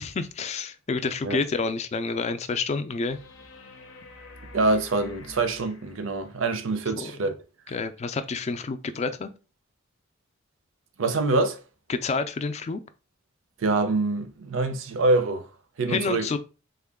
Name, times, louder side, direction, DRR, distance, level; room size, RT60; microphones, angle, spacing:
voice 1, 0.0-3.2 7.0-7.3 7.7-9.3 11.9-12.8 15.9-16.4, left 4 dB, 35° left, 0.3 m, -29 dB
sound 1, 3.1-6.4 9.1-9.2, left 3 dB, 80° left, 0.7 m, -47 dB
voice 2, 4.5-7.4 11.0-11.6 13.6-15.4 15.8-16.3, right 3 dB, 80° right, 0.6 m, -25 dB
3.7 x 2.2 x 3.5 m
head